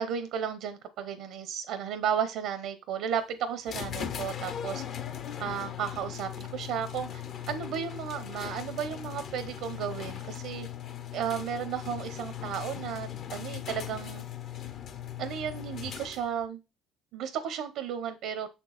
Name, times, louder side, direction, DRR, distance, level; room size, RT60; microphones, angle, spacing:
voice 1, 0.0-4.8 5.4-10.7 11.1-14.2 15.2-16.6 17.1-18.5, right 8 dB, 75° right, 10 dB, 0.8 m, -34 dB
sound 1, 3.7-16.5, left 10 dB, 55° left, 1.0 m, -39 dB
6.3 x 4.5 x 4.1 m, 0.28 s
supercardioid pair, 95°, 0 cm